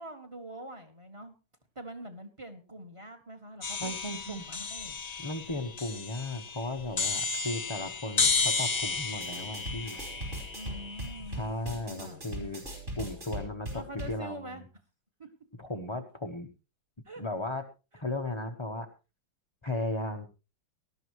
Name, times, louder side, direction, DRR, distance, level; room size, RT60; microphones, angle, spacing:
voice 1, 0.0-1.3 1.7-5.0 10.5-11.4 11.8-12.5 13.7-14.6 15.2-15.3 17.0-17.2, right 1 dB, 15° right, 7 dB, 1.5 m, -44 dB
sound 1, 3.6-11.5, left 4 dB, 70° left, 0.3 m, -33 dB
voice 2, 3.8-4.4 5.2-10.0 11.3-12.6 13.0-14.4 15.6-16.5 17.2-17.6 17.9-18.9 19.6-20.3, left 2 dB, 25° left, 4 dB, 0.6 m, -36 dB
sound 2, 9.1-14.2, equal, 35° right, 5.1 m, -40 dB
19.0 x 12.5 x 3.1 m, 0.30 s
omnidirectional pair, 2.1 m